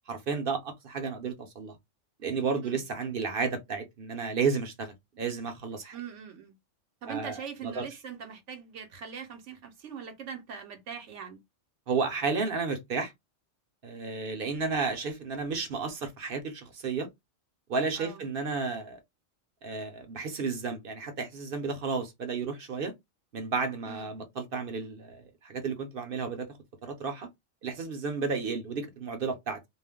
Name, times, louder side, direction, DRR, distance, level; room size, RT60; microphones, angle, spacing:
voice 1, 0.1-1.8 2.2-5.9 7.1-7.9 11.9-13.1 13.8-17.1 17.7-19.0 19.6-22.9 23.3-26.5 26.8-27.3 27.6-29.6, right 4 dB, 55° right, 0.7 m, -32 dB
voice 2, 5.9-6.5 7.0-11.4 18.0-18.2 23.9-24.1, right 7 dB, 75° right, 0.9 m, -41 dB
2.4 x 2.0 x 3.4 m
omnidirectional pair, 1.3 m